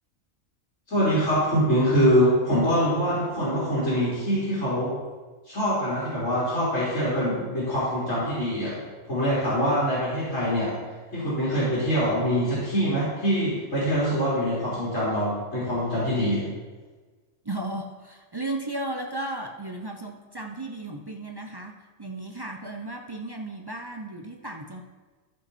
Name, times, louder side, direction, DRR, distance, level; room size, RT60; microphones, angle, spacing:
voice 1, 0.9-4.9 5.5-8.8 9.0-10.7 11.1-16.5, equal, 65° left, -10 dB, 3.7 m, -24 dB
voice 2, 17.4-24.8, right 2 dB, 30° right, 2 dB, 0.4 m, -35 dB
14.0 x 5.5 x 4.2 m, 1.4 s
omnidirectional pair, 1.3 m